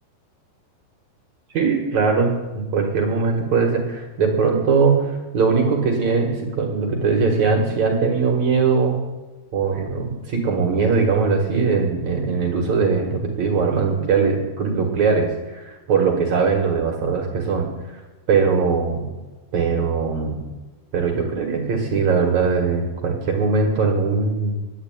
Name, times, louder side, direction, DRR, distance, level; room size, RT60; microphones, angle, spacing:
voice 1, 1.5-9.0 9.5-18.0 18.3-19.1 19.5-20.4 20.9-24.5, right 5 dB, 55° right, 1 dB, 2.3 m, -20 dB
10.5 x 9.5 x 9.2 m, 1.2 s
omnidirectional pair, 4.9 m